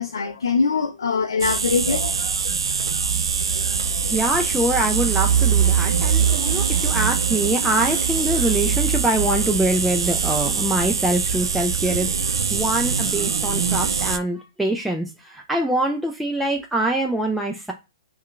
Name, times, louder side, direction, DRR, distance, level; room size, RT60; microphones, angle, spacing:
voice 1, 0.0-2.3, left 5 dB, 75° left, 0.4 m, -23 dB
sound 1, 1.4-14.2, right 6 dB, 80° right, 0.3 m, -22 dB
voice 2, 4.0-17.7, right 1 dB, ahead, 0.4 m, -24 dB
2.7 x 2.2 x 2.4 m
hypercardioid pair, 120°, 2 cm